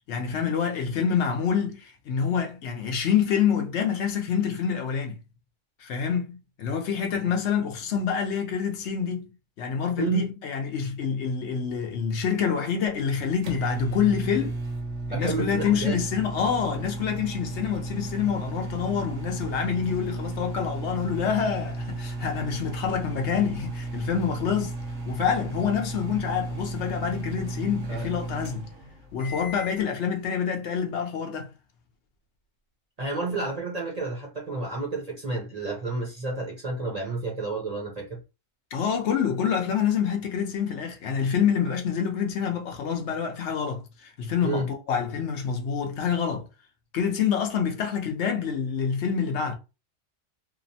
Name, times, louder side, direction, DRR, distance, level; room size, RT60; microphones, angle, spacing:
voice 1, 0.1-5.2 5.8-14.6 15.1-24.7 25.1-28.7 29.1-31.5 38.7-46.5 46.9-49.6, left 7 dB, 70° left, 0.8 m, -27 dB
voice 2, 10.0-10.3 15.1-16.0 33.0-38.2 44.4-44.7, right 3 dB, 40° right, 0.6 m, -30 dB
sound 1, 12.9-29.8, right 2 dB, 75° right, 1.0 m, -34 dB
2.8 x 2.0 x 2.7 m
omnidirectional pair, 1.3 m